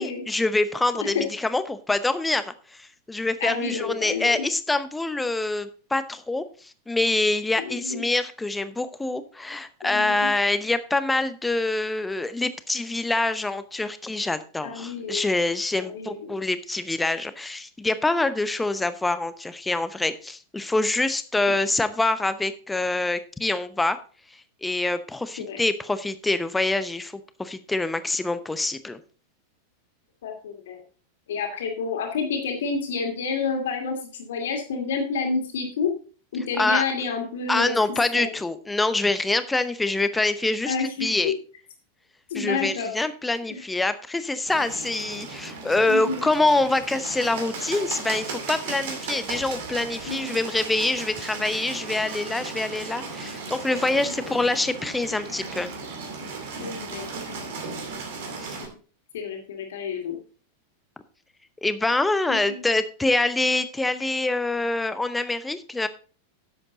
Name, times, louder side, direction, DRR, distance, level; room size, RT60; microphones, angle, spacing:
voice 1, 0.0-24.0 24.6-29.0 36.6-36.8 37.5-41.3 42.3-55.7 58.4-58.6 61.6-65.9, left 2 dB, 10° left, 12 dB, 0.8 m, -25 dB
voice 2, 3.4-4.4 7.7-8.0 9.8-10.3 14.6-15.2 15.8-16.3 25.4-25.6 30.2-30.8 31.3-35.9 36.3-37.7 38.1-38.3 40.7-41.3 42.3-43.1 43.5-43.6 45.8-46.3 50.0-50.4 54.2-54.3 56.6-57.1 59.1-60.2 62.3-62.7, left 5 dB, 60° left, 3 dB, 2.4 m, -29 dB
Bird, 44.5-58.7, right 4 dB, 55° right, 2.5 m, -36 dB
11.0 x 7.7 x 3.9 m, 0.38 s
figure-of-eight pair, 90°, 0 cm